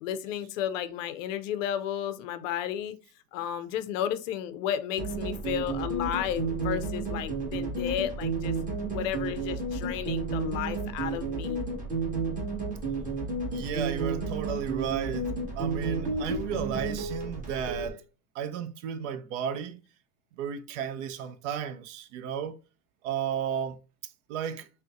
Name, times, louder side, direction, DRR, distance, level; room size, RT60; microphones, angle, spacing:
voice 1, 0.0-3.0 3.3-8.5 8.9-11.6, left 10 dB, 60° left, 0.5 m, -33 dB
sound 1, 5.0-17.9, right 3 dB, 15° right, 1.4 m, -31 dB
voice 2, 13.5-15.2 15.6-18.0 18.3-19.8 20.4-22.6 23.0-23.8 24.0-24.7, right 8 dB, 55° right, 0.5 m, -33 dB
3.7 x 2.1 x 2.5 m
hypercardioid pair, 110°, 45 cm